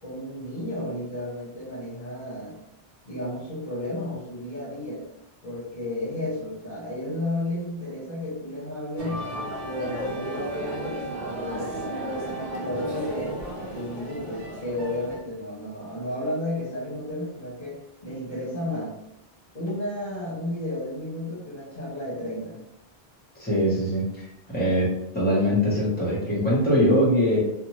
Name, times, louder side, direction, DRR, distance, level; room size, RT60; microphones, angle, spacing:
voice 1, 0.0-2.6 3.1-5.1 5.4-9.2 9.6-13.4 13.7-19.0 19.5-22.6, left 1 dB, 45° left, -7 dB, 1.0 m, -33 dB
sound 1, 9.0-15.2, right 1 dB, 55° right, 0.7 m, -34 dB
voice 2, 23.4-24.0 24.5-24.9 25.1-27.4, equal, 10° left, -7 dB, 1.1 m, -22 dB
2.6 x 2.3 x 3.1 m, 0.85 s
omnidirectional pair, 1.1 m